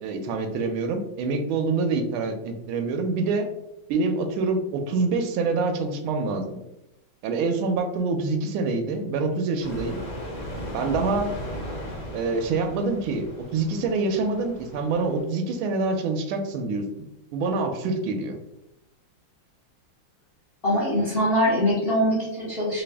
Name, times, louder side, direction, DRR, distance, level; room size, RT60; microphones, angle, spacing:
voice 1, 0.0-3.5 3.9-6.6 7.2-10.0 10.7-11.3 12.1-18.4, right 3 dB, 85° right, 6 dB, 1.4 m, -26 dB
sound 1, 9.6-15.2, equal, 65° left, 1.8 m, -37 dB
voice 2, 20.6-22.8, equal, 45° left, -6 dB, 0.7 m, -23 dB
4.1 x 2.2 x 3.3 m, 0.89 s
omnidirectional pair, 2.2 m